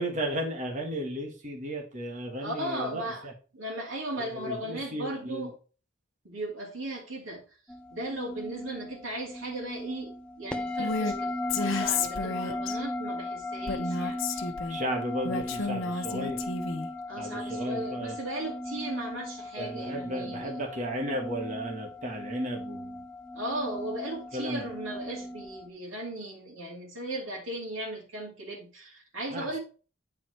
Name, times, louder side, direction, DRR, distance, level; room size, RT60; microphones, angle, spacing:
voice 1, 0.0-3.3 4.2-5.5 14.7-16.4 17.2-18.2 19.6-23.0 24.3-24.7 29.3-29.6, right 1 dB, 40° right, 1.9 m, -34 dB
voice 2, 2.4-5.5 6.2-7.4 7.9-14.5 17.1-20.6 23.3-29.6, right 1 dB, 85° right, 2.7 m, -37 dB
sound 1, 7.7-25.7, left 1 dB, 5° left, 0.7 m, -37 dB
Female speech woman speaking, 10.8-11.1 11.5-12.8 13.7-14.8 15.2-16.9, left 4 dB, 85° left, 1.1 m, -31 dB
9.0 x 4.9 x 4.4 m
head